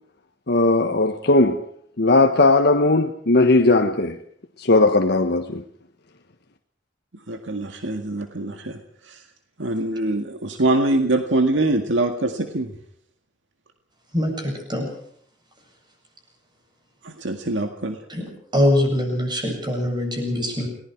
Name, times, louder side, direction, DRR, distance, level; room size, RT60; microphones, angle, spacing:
voice 1, 0.5-1.6 2.0-4.2 4.6-5.6, left 2 dB, 60° left, 1.4 m, -17 dB
voice 2, 7.3-9.2 9.6-12.7 17.0-18.0, right 2 dB, 80° right, 1.9 m, -24 dB
voice 3, 14.1-14.9 18.1-18.3 18.5-20.7, left 1 dB, 25° right, 8.0 m, -23 dB
29.5 x 19.5 x 4.7 m
head